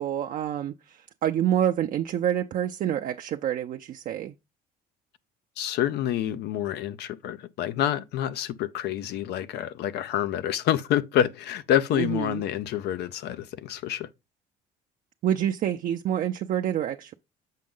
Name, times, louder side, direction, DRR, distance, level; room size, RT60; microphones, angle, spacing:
voice 1, 0.0-4.3 11.9-12.4 15.2-17.1, right 10 dB, 55° right, 0.5 m, -27 dB
voice 2, 5.6-14.1, left 11 dB, 75° left, 0.7 m, -27 dB
7.4 x 5.2 x 3.7 m
cardioid pair, 110°, 17 cm